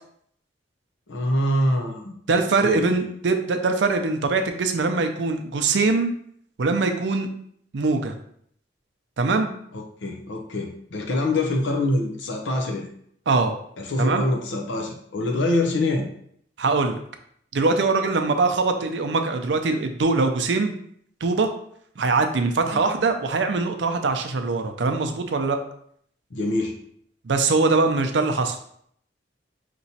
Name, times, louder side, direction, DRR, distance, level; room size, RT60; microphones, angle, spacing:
voice 1, 1.1-2.1 2.6-3.1 9.7-12.9 13.8-16.1 22.7-22.8 26.3-26.8, left 1 dB, 90° left, 1 dB, 0.6 m, -25 dB
voice 2, 2.3-6.1 6.6-7.3 7.7-8.1 9.2-9.5 13.3-13.5 14.0-14.3 16.6-17.0 17.5-20.7 21.2-21.5 22.0-25.6 27.2-28.6, right 3 dB, 70° right, 7 dB, 0.5 m, -22 dB
5.4 x 2.9 x 2.8 m, 0.67 s
head